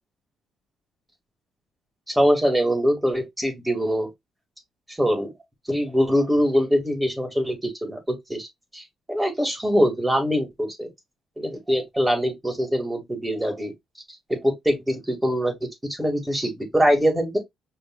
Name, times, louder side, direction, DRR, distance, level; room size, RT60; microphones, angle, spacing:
voice 1, 2.2-4.1 4.9-5.3 5.7-8.5 8.7-10.9 11.4-13.7 14.3-17.4, equal, 10° right, 2.2 m, -23 dB
5.2 x 3.3 x 2.5 m
cardioid pair, 90°, 0 cm